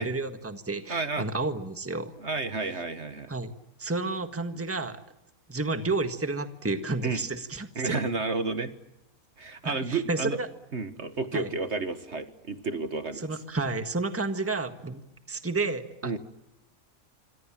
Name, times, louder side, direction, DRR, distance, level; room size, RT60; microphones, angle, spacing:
voice 1, 0.0-2.1 3.3-3.5 3.8-5.0 5.5-7.9 9.6-10.5 11.3-11.5 13.2-15.0 15.3-16.2, right 3 dB, 10° right, 8 dB, 1.6 m, -31 dB
voice 2, 0.9-1.3 2.2-3.3 7.0-7.2 7.8-8.7 9.4-10.4 10.7-13.3 16.0-16.2, right 3 dB, 50° right, 9 dB, 1.7 m, -31 dB
27.5 x 25.5 x 7.5 m, 0.89 s
omnidirectional pair, 1.5 m